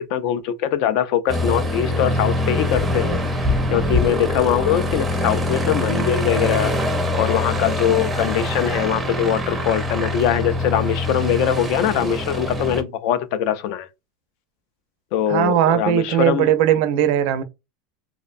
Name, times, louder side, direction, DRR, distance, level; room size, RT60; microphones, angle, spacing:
voice 1, 0.0-3.2 3.7-6.7 7.1-13.9 15.1-16.5, left 9 dB, 55° left, 0.3 m, -22 dB
Aircraft, 1.3-12.8, left 1 dB, 10° right, 0.5 m, -23 dB
voice 2, 15.3-17.4, right 11 dB, 60° right, 0.4 m, -18 dB
2.5 x 2.1 x 2.4 m
supercardioid pair, 150°, 0 cm